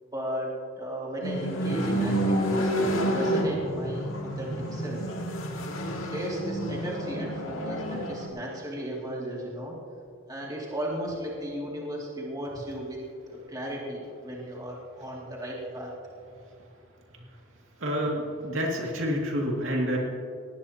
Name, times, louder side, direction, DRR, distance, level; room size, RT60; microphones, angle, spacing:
voice 1, 0.1-5.1 6.1-9.8 10.3-13.0 13.3-15.9, right 1 dB, 20° right, -4 dB, 2.5 m, -35 dB
sound 1, 1.2-8.3, equal, 75° left, 2.4 m, -29 dB
voice 2, 17.8-20.0, equal, 65° right, -1 dB, 2.5 m, -28 dB
19.0 x 18.0 x 2.9 m, 2.5 s
head